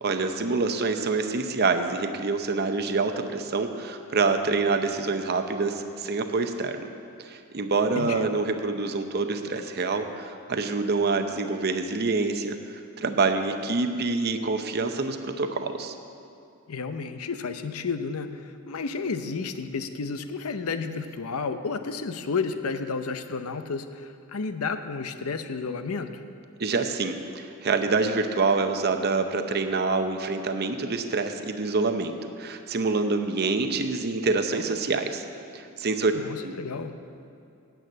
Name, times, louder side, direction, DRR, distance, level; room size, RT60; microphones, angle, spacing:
voice 1, 0.0-6.9 7.2-12.6 13.0-15.9 26.6-35.2 35.5-36.1 36.4-36.5, right 3 dB, 50° right, 7 dB, 0.7 m, -26 dB
voice 2, 16.7-26.2 36.1-37.0, left 4 dB, 85° left, 9 dB, 0.6 m, -32 dB
9.3 x 7.8 x 8.7 m, 2.5 s
head